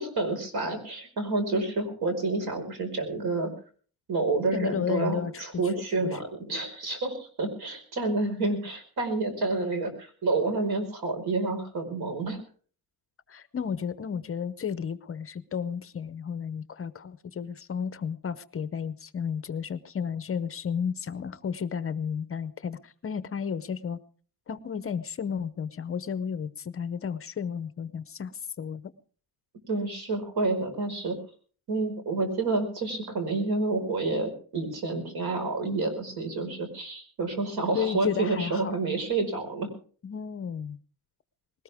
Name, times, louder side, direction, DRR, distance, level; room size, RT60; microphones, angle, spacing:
voice 1, 0.0-3.5 4.1-12.4 29.7-31.2 31.7-39.7, right 3 dB, 80° right, 6 dB, 5.0 m, -29 dB
voice 2, 4.5-5.4 5.9-6.2 13.3-24.0 24.5-28.9 37.7-38.8 40.0-40.8, left 7 dB, 35° left, 14 dB, 0.7 m, -33 dB
20.5 x 18.5 x 3.5 m, 0.43 s
wide cardioid pair, 180°, 37 cm